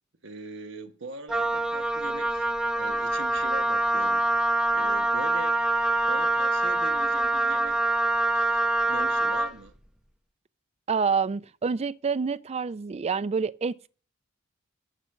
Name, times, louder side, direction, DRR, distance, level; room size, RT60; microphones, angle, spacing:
voice 1, 0.2-2.5 2.8-4.3 4.7-5.6 6.1-7.8 8.3-9.7, right 3 dB, 65° right, 1.2 m, -41 dB
Wind instrument woodwind instrument, 1.3-9.6, right 2 dB, 5° right, 0.8 m, -25 dB
voice 2, 10.9-13.9, right 5 dB, 30° right, 0.4 m, -27 dB
10.0 x 6.3 x 6.4 m
head